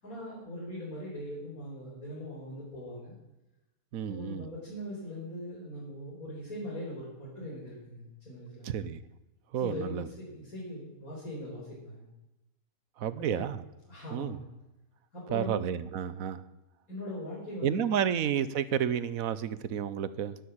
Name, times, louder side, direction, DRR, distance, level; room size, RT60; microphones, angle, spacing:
voice 1, 0.0-3.1 4.1-8.8 9.5-12.1 13.2-13.5 13.9-14.5 15.1-15.6 16.9-18.1, left 1 dB, 85° left, -6 dB, 5.3 m, -41 dB
voice 2, 3.9-4.5 8.6-9.0 9.5-10.1 13.0-13.6 14.1-14.4 15.3-16.4 17.6-20.4, right 9 dB, 80° right, 16 dB, 1.3 m, -31 dB
12.0 x 11.0 x 8.8 m, 0.99 s
omnidirectional pair, 1.5 m